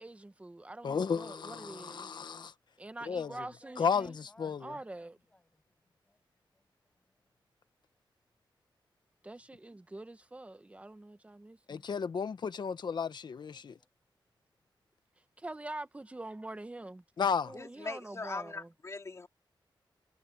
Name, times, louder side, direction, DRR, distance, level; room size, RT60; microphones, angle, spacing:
voice 1, 0.0-2.1 2.8-4.2 4.6-5.2 9.2-11.8 15.4-17.0 17.5-18.7, right 2 dB, 15° right, 1.1 m, -45 dB
voice 2, 0.8-2.5 3.0-3.5 3.8-4.7 11.7-13.8 17.2-17.5, left 6 dB, 60° left, 1.1 m, -33 dB
voice 3, 3.1-4.9 5.3-5.6 6.0-6.2 6.5-7.2 13.5-13.9, left 1 dB, 15° left, 6.8 m, -61 dB
voice 4, 17.5-19.3, left 3 dB, 35° left, 2.6 m, -41 dB
wide cardioid pair, 160°, 9 cm